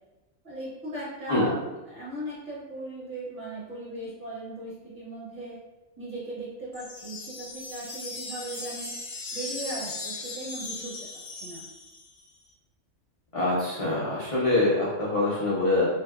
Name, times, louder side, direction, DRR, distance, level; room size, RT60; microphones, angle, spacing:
voice 1, 0.4-1.6 1.9-5.6 6.0-8.9 9.3-11.6, right 1 dB, 45° right, -8 dB, 0.9 m, -38 dB
sound 1, 6.7-12.2, left 2 dB, 65° left, 0.9 m, -38 dB
voice 2, 13.3-15.8, left 2 dB, 50° left, -8 dB, 0.4 m, -24 dB
2.7 x 2.4 x 2.3 m, 1.1 s
omnidirectional pair, 1.3 m